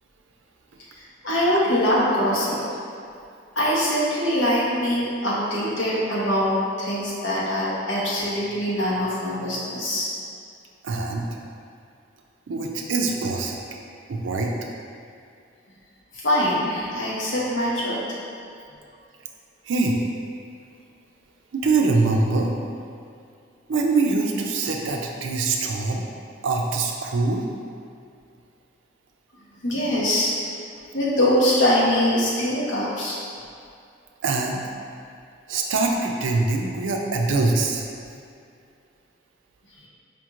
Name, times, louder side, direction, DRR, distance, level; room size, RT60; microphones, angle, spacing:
voice 1, 1.2-2.6 3.6-10.1 16.2-18.0 29.6-30.3 30.9-33.2, equal, 75° left, -7 dB, 1.0 m, -23 dB
voice 2, 10.8-11.3 12.5-13.6 14.1-14.5 19.7-20.0 21.5-22.5 23.7-26.0 26.4-27.4 34.2-34.6 35.5-37.8, right 3 dB, 85° right, 1 dB, 0.4 m, -23 dB
5.0 x 2.9 x 2.5 m, 2.4 s
head